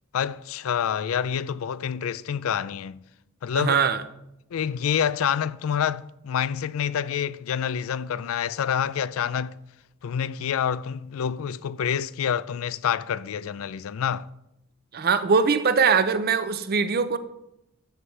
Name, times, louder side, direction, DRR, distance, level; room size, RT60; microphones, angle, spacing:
voice 1, 0.1-3.0 3.4-3.8 4.5-9.6 10.0-14.3, left 8 dB, 85° left, 0.4 m, -27 dB
voice 2, 3.5-4.0 14.9-17.2, right 5 dB, 50° right, 0.6 m, -21 dB
13.0 x 7.8 x 3.3 m
head